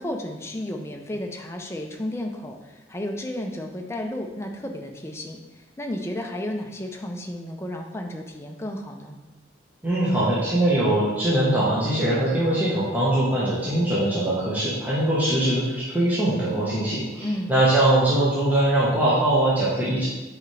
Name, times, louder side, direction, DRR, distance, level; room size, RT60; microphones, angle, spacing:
voice 1, 0.0-9.2 17.2-17.5, left 1 dB, 15° left, 2 dB, 0.6 m, -33 dB
voice 2, 9.8-20.1, right 1 dB, 10° right, -9 dB, 1.2 m, -22 dB
7.0 x 5.0 x 3.3 m, 1.2 s
head